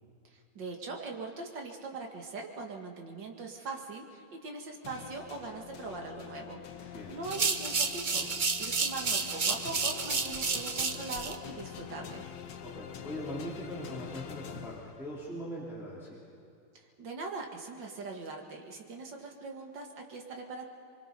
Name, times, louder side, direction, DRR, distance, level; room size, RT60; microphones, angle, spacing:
voice 1, 0.3-12.2 16.7-20.7, right 3 dB, 55° right, 2 dB, 2.4 m, -41 dB
sound 1, 4.8-15.4, left 8 dB, 60° left, 1.5 m, -46 dB
voice 2, 6.8-7.1 12.6-16.3, equal, ahead, -7 dB, 3.3 m, -41 dB
sound 2, 7.2-11.4, right 4 dB, 80° right, 0.4 m, -31 dB
24.5 x 24.0 x 5.4 m, 2.5 s
omnidirectional pair, 2.4 m